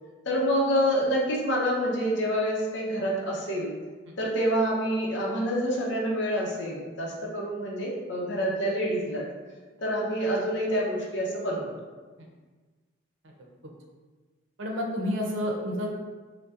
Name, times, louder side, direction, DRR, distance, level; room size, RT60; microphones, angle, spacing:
voice 1, 0.2-3.7 4.2-9.3 9.8-11.7, equal, 65° left, -4 dB, 0.8 m, -27 dB
voice 2, 14.6-15.9, equal, 75° right, 0 dB, 0.6 m, -29 dB
5.2 x 2.2 x 2.4 m, 1.4 s
head